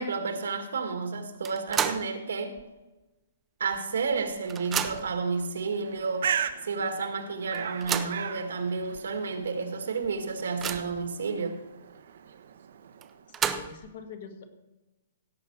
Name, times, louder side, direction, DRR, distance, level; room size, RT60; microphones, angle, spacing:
voice 1, 0.0-2.6 3.6-11.6, right 4 dB, 85° right, 7 dB, 1.9 m, -31 dB
sound 1, 1.4-2.2 2.6-2.7 3.7-3.8 4.1-5.2 6.0-6.1 6.5-6.6 7.5-8.2 8.9-9.0 9.4-9.5 10.0-11.1 13.0-13.9, right 8 dB, 10° right, 0.5 m, -32 dB
Bird, 5.8-13.4, right 8 dB, 55° right, 0.8 m, -38 dB
voice 2, 13.3-14.5, left 5 dB, 45° left, 7 dB, 1.6 m, -44 dB
16.5 x 7.9 x 4.8 m, 1.1 s
hypercardioid pair, 170°, 0 cm